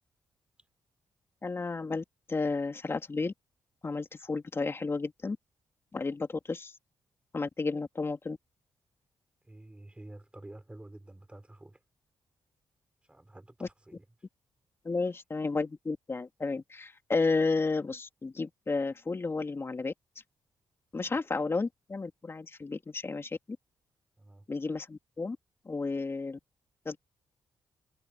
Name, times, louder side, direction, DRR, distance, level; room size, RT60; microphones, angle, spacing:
voice 1, 1.4-3.3 3.8-5.4 5.9-6.7 7.3-8.4 13.6-13.7 14.8-19.9 20.9-23.6 24.5-25.4 25.6-26.4 26.8-27.0, left 3 dB, 30° left, 2.5 m, -32 dB
voice 2, 9.4-11.8 13.0-14.0 21.0-21.2 24.2-24.5, right 1 dB, 15° right, 5.0 m, -50 dB
cardioid pair, 90°, 8 cm